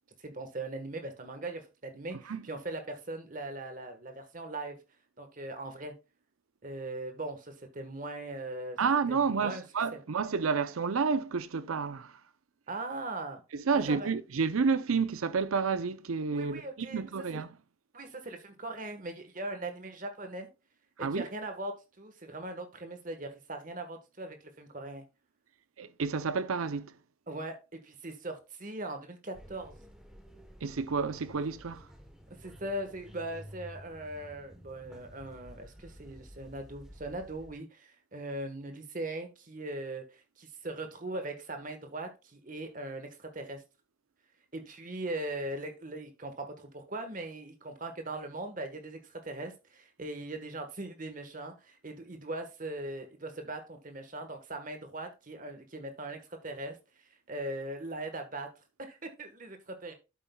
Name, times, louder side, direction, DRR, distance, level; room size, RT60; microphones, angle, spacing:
voice 1, 0.2-4.8 5.2-5.9 6.6-8.8 9.1-9.6 9.9-10.0 12.7-13.4 13.7-14.1 16.3-17.0 17.3-17.4 17.9-20.5 21.0-25.0 27.3-27.6 27.8-29.8 32.4-43.6 44.5-56.7 57.3-58.5 58.8-59.9, right 2 dB, 40° right, 1.4 m, -40 dB
voice 2, 8.8-12.2 13.5-17.5 21.0-21.3 25.8-26.9 30.6-31.9, right 5 dB, 85° right, 0.6 m, -30 dB
sound 1, 29.3-37.6, equal, 5° right, 1.1 m, -52 dB
11.0 x 8.1 x 2.3 m
head